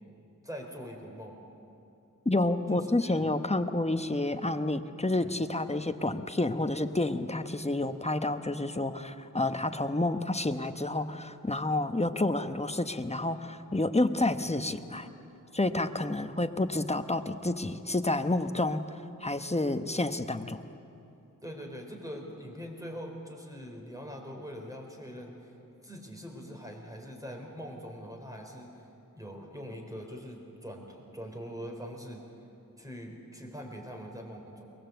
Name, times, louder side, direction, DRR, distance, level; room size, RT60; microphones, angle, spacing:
voice 1, 0.4-1.4 2.7-3.3 5.2-5.4 21.4-25.6 25.8-32.3 32.8-34.7, equal, 10° right, 1 dB, 4.4 m, -43 dB
voice 2, 2.2-15.1 15.5-18.8 19.2-20.6, left 2 dB, 20° left, 8 dB, 1.0 m, -29 dB
23.0 x 19.5 x 8.0 m, 2.8 s
wide cardioid pair, 50°, 32 cm